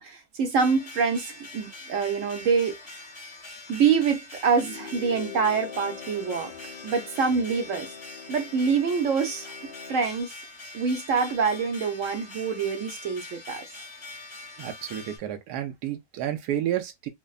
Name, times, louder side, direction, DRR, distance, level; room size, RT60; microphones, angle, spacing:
voice 1, 0.0-2.8 3.7-6.5 6.8-7.9 8.3-9.5 9.9-10.3 10.7-13.6, right 5 dB, 60° right, 1.0 m, -25 dB
sound 1, 0.6-15.2, left 2 dB, 20° left, 0.9 m, -43 dB
sound 2, 4.4-10.1, left 7 dB, 55° left, 1.0 m, -43 dB
voice 2, 14.6-17.1, right 11 dB, 85° right, 1.2 m, -31 dB
3.2 x 2.1 x 2.3 m
omnidirectional pair, 1.6 m